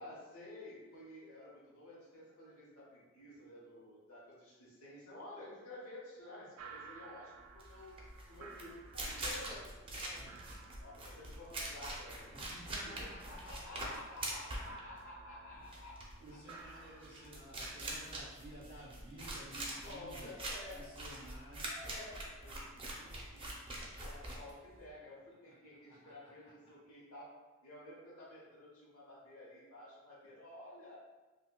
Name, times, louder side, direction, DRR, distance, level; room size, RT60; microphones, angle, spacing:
voice 1, 0.0-8.0 8.3-10.2 10.8-12.3 12.8-16.1 17.2-17.3 19.8-20.9 21.6-23.6 24.0-27.4 27.6-31.0, left 1 dB, 90° left, -5 dB, 1.0 m, -52 dB
sound 1, 6.6-21.1, right 5 dB, 85° right, 0.4 m, -57 dB
sound 2, 7.5-24.9, right 1 dB, 25° right, 0.6 m, -44 dB
voice 2, 10.1-10.5 12.3-13.9 14.2-14.3 15.5-15.7 16.2-20.3 20.7-21.7 25.4-26.7, right 1 dB, 30° left, -8 dB, 1.4 m, -54 dB
5.2 x 2.2 x 2.2 m, 1.2 s
head